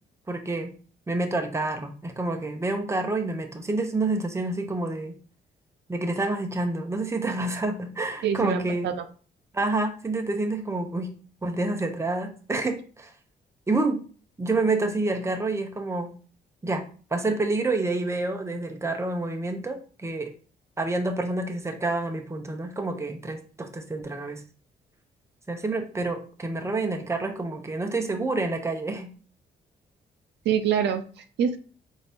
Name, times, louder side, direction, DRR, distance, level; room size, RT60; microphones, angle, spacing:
voice 1, 0.3-0.7 1.1-5.2 5.9-8.9 9.5-11.1 11.4-13.1 13.7-14.0 14.4-16.1 16.6-16.8 17.1-20.3 20.8-24.4 25.5-29.1, right 2 dB, 15° right, 4 dB, 0.7 m, -28 dB
voice 2, 8.2-9.0 30.5-31.6, right 8 dB, 80° right, 8 dB, 0.5 m, -26 dB
4.2 x 2.7 x 3.3 m, 0.40 s
cardioid pair, 85°, 18 cm